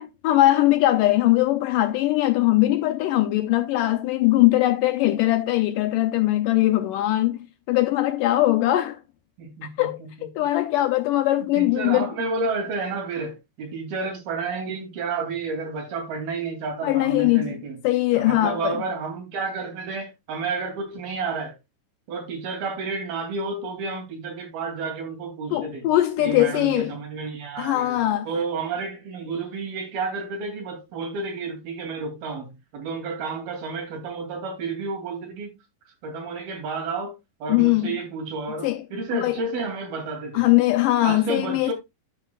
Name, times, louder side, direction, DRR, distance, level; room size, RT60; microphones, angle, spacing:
voice 1, 0.0-7.4 7.7-9.0 9.6-12.1 16.8-17.6 17.8-18.8 25.5-26.9 27.6-28.3 37.5-38.0 38.6-38.8 39.1-39.3 40.3-41.7, left 16 dB, 80° left, 2.0 m, -21 dB
voice 2, 9.4-10.1 11.5-17.8 18.1-21.5 22.1-25.9 26.2-35.5 36.0-37.1 37.4-40.5 41.0-41.7, right 4 dB, 80° right, 4.5 m, -31 dB
12.5 x 6.0 x 2.3 m
omnidirectional pair, 4.3 m